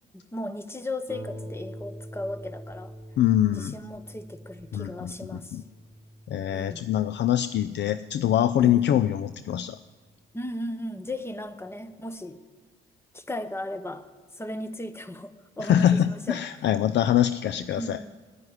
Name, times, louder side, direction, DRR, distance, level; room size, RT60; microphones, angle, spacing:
voice 1, 0.3-2.9 3.6-5.6 6.5-6.8 8.6-8.9 10.3-12.4 13.1-14.1 14.4-16.4 17.8-18.2, left 1 dB, 10° left, 11 dB, 0.9 m, -36 dB
Harp, 1.1-10.3 11.1-11.2 11.7-11.8, equal, 10° right, 1.6 m, -45 dB
voice 2, 3.2-3.8 4.7-5.6 6.3-9.8 15.6-18.0, left 11 dB, 60° left, 12 dB, 0.5 m, -24 dB
9.7 x 9.6 x 9.8 m, 1.4 s
cardioid pair, 90°, 20 cm